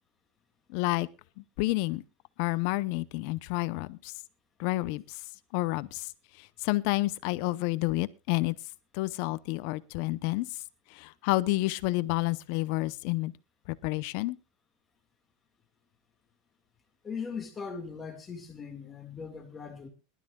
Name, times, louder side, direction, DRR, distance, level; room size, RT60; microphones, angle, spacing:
voice 1, 0.7-1.1 1.4-2.0 2.4-4.1 4.6-5.2 5.5-6.1 6.4-8.5 8.9-10.6 10.9-13.3 13.7-14.4, left 20 dB, 50° left, 0.7 m, -30 dB
voice 2, 17.0-19.9, left 5 dB, 15° left, 1.8 m, -39 dB
22.5 x 12.0 x 2.3 m
supercardioid pair, 170°, 0 cm